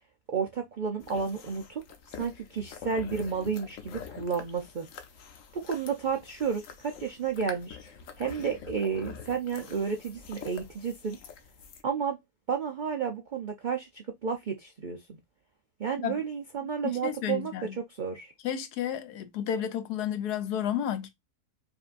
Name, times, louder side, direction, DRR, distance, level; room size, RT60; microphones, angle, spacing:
voice 1, 0.3-1.8 2.1-4.9 5.5-7.8 8.2-11.2 11.8-12.2 12.5-15.2 15.8-18.3, right 6 dB, 70° right, 0.4 m, -32 dB
sound 1, 1.0-11.8, left 6 dB, 65° left, 1.0 m, -46 dB
voice 2, 17.0-17.7 18.4-21.1, left 9 dB, 85° left, 1.3 m, -31 dB
5.2 x 2.7 x 2.5 m
omnidirectional pair, 1.6 m